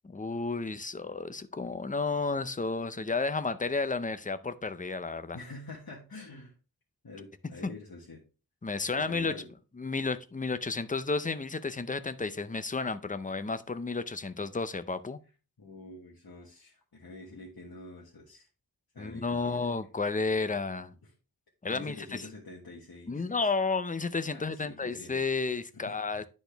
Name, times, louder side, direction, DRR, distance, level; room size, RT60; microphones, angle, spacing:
voice 1, 0.0-5.4 7.6-7.7 8.6-9.5 9.8-15.2 19.0-20.9 21.6-22.3 23.1-26.2, left 4 dB, 20° left, 0.5 m, -32 dB
voice 2, 5.3-6.6 7.0-8.2 8.9-9.5 15.6-18.5 18.9-19.7 21.0-21.1 21.6-23.2 24.3-25.1 25.7-26.0, left 2 dB, 65° left, 1.5 m, -47 dB
10.0 x 4.3 x 3.4 m
wide cardioid pair, 75°, 39 cm